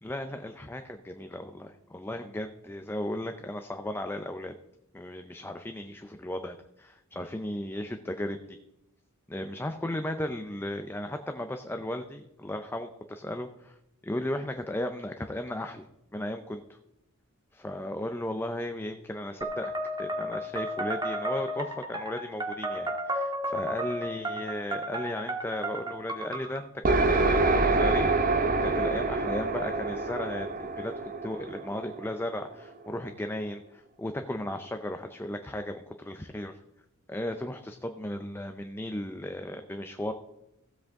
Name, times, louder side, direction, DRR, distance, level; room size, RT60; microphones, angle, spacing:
voice 1, 0.0-4.5 4.9-8.6 9.3-13.8 14.1-15.9 16.1-16.8 17.5-19.7 20.0-36.6 37.1-40.1, left 1 dB, 10° left, 6 dB, 0.5 m, -35 dB
sound 1, 19.4-26.6, right 1 dB, 20° right, 1.6 m, -33 dB
sound 2, 26.8-32.5, right 3 dB, 40° right, 0.7 m, -26 dB
15.5 x 7.8 x 3.6 m, 0.88 s
head